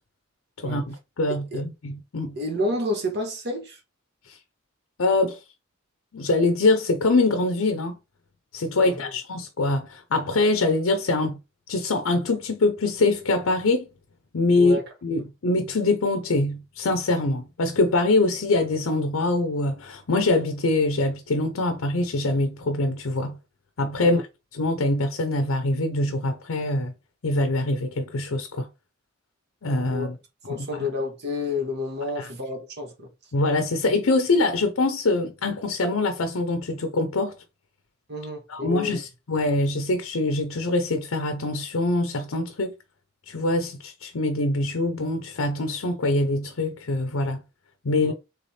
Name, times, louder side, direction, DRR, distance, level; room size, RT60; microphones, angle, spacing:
voice 1, 0.6-2.4 4.3-4.4 5.0-5.4 6.1-8.0 8.5-11.4 11.7-13.9 14.3-14.8 15.0-23.4 23.8-24.2 24.5-26.9 27.2-28.7 29.6-30.1 30.5-30.7 32.2-32.3 33.3-37.4 38.5-42.7 43.3-47.4 47.8-48.1, left 2 dB, 75° left, 0.6 m, -24 dB
voice 2, 2.3-3.8 8.8-9.0 14.5-14.8 24.0-24.2 29.9-30.1 30.5-33.1 38.1-39.0 48.0-48.1, left 2 dB, 50° right, 1.0 m, -30 dB
3.5 x 3.2 x 4.1 m
head